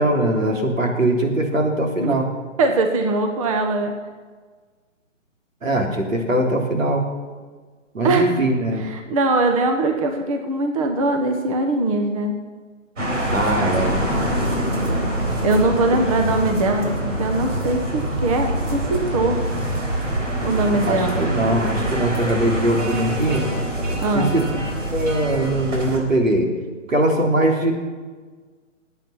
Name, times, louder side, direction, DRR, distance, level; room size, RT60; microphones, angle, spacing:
voice 1, 0.0-2.3 5.6-7.0 7.9-8.9 13.3-14.0 20.9-23.5 24.1-24.5 24.9-26.5 26.9-27.7, right 1 dB, 90° right, 1 dB, 3.2 m, -21 dB
voice 2, 2.6-3.9 8.0-8.3 8.8-12.3 15.4-19.4 20.4-21.3 24.0-24.4, right 2 dB, 25° right, 4 dB, 1.2 m, -21 dB
sound 1, 13.0-26.0, right 1 dB, 70° right, 4.4 m, -25 dB
19.0 x 9.0 x 5.8 m, 1.5 s
hypercardioid pair, 155°, 38 cm